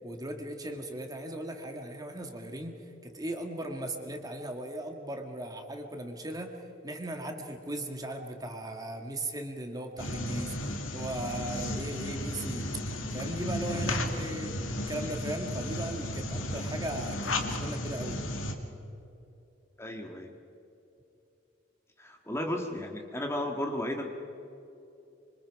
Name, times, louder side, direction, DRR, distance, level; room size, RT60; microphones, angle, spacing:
voice 1, 0.0-10.6 10.9-12.7 13.1-14.6 14.9-18.2, right 1 dB, 20° right, 4 dB, 1.9 m, -38 dB
sound 1, 10.0-18.5, left 1 dB, 90° left, 2.2 m, -34 dB
voice 2, 19.8-20.3 22.0-24.1, left 1 dB, 15° left, 2 dB, 1.7 m, -34 dB
25.5 x 25.5 x 4.8 m, 2.8 s
head